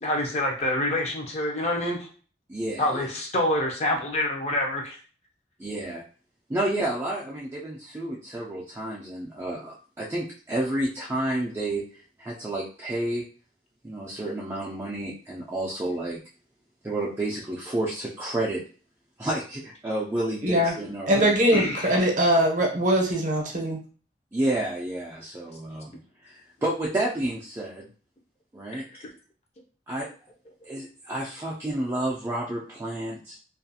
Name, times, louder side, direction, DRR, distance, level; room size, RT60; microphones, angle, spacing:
voice 1, 0.0-2.1 2.8-5.0 21.1-22.0 28.7-29.1, left 1 dB, 40° left, 1 dB, 0.6 m, -27 dB
voice 2, 2.5-3.1 5.6-6.0 6.5-13.2 13.8-16.2 16.8-18.6 19.2-21.3 24.3-27.9 28.5-29.0 29.9-30.1 30.6-33.4, right 1 dB, 15° right, -5 dB, 0.3 m, -30 dB
voice 3, 20.4-20.7 21.1-23.8, right 1 dB, 45° right, 1 dB, 0.7 m, -22 dB
2.4 x 2.3 x 2.7 m, 0.40 s
head